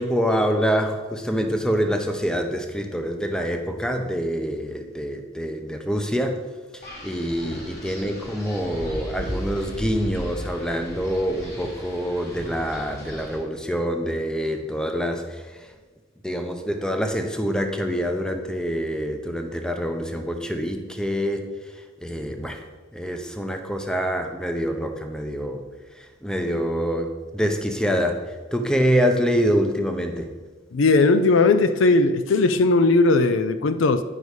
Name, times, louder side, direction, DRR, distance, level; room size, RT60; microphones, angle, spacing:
voice 1, 0.0-6.5 6.7-15.7 16.2-21.5 22.0-22.6 22.9-25.6 26.0-30.3, equal, 5° left, 5 dB, 0.6 m, -26 dB
Wind, 6.8-13.4, equal, 50° left, 2.9 m, -36 dB
voice 2, 30.7-34.0, left 3 dB, 70° left, 10 dB, 0.5 m, -18 dB
9.8 x 5.5 x 4.7 m, 1.3 s
head